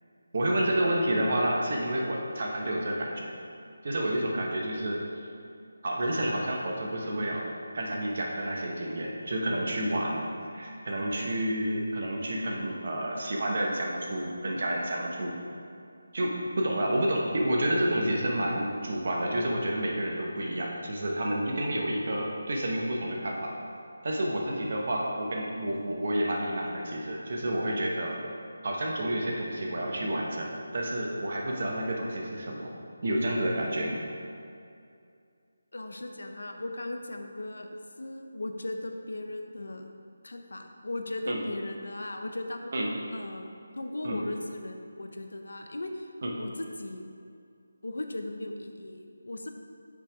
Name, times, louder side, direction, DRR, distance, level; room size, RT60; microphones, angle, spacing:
voice 1, 0.3-3.3 3.8-5.0 5.8-7.5 7.7-15.3 16.1-23.5 24.0-28.2 28.6-32.7 33.0-34.0 41.3-41.4 42.7-43.0 44.0-44.2 46.2-46.3, right 1 dB, 50° right, -1 dB, 1.1 m, -29 dB
voice 2, 35.7-39.9 40.2-42.7 43.1-43.5 43.8-46.1 46.4-47.1 47.8-49.5, left 2 dB, 80° left, 4 dB, 0.7 m, -37 dB
6.1 x 4.1 x 4.8 m, 2.4 s
figure-of-eight pair, 170°, 0 cm